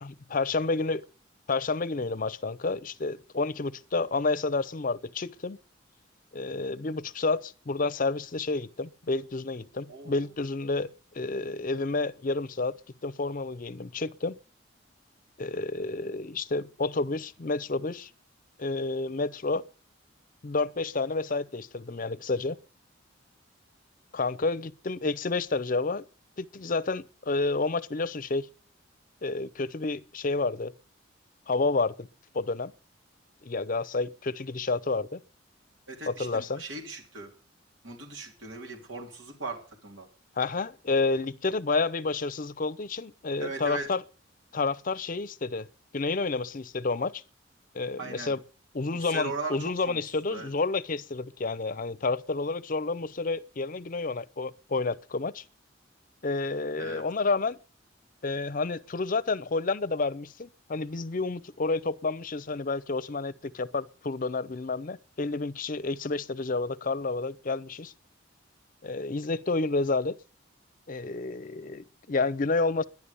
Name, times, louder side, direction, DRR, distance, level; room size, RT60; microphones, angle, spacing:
voice 1, 0.0-1.0 1.5-5.6 6.3-10.9 11.1-12.7 13.0-14.4 15.4-18.1 18.6-19.7 20.4-22.6 24.1-26.0 26.4-28.5 29.2-30.7 31.5-32.1 32.3-32.7 33.4-35.2 36.1-36.6 40.4-44.0 44.5-45.7 45.9-47.2 47.7-48.4 48.7-55.4 56.2-57.6 58.2-67.9 68.8-70.2 70.9-72.9, left 3 dB, 45° left, 0.6 m, -30 dB
voice 2, 35.9-37.3 37.8-40.1 43.4-43.9 48.0-48.3 49.0-49.6 49.9-50.0 50.3-50.5 56.8-57.0, right 3 dB, 80° right, 3.2 m, -38 dB
11.0 x 11.0 x 7.0 m
head